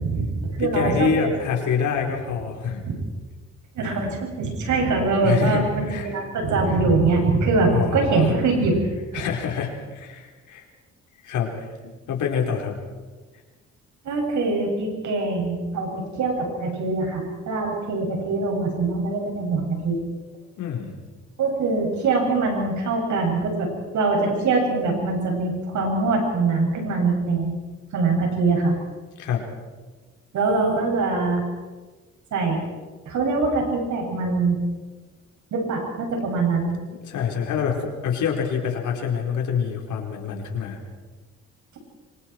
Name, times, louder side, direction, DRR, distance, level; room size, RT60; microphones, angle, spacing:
voice 1, 0.0-1.3 2.8-3.0 3.7-8.7 9.1-9.2 14.0-20.0 21.4-27.5 27.9-28.7 30.3-31.4 32.3-32.6 33.1-34.6 35.5-36.7, right 3 dB, 75° right, 1 dB, 7.8 m, -23 dB
voice 2, 0.6-2.8 5.2-6.1 6.7-6.8 7.7-8.4 9.1-10.6 11.2-12.7 20.6-21.0 29.2-29.5 37.0-40.8, left 7 dB, 80° left, 1 dB, 4.7 m, -26 dB
26.0 x 25.5 x 4.8 m, 1.3 s
cardioid pair, 90°, 30 cm